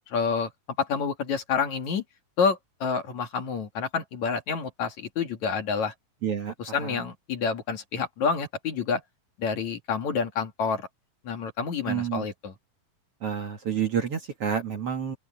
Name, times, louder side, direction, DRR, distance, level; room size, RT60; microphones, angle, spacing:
voice 1, 0.1-0.5 0.8-2.0 2.4-5.9 6.6-9.0 9.4-10.9 11.2-12.5, left 5 dB, 55° left, 3.5 m, -28 dB
voice 2, 6.2-6.5 6.8-7.0 11.9-12.2 13.2-15.2, right 8 dB, 50° right, 2.1 m, -29 dB
open air
omnidirectional pair, 4.0 m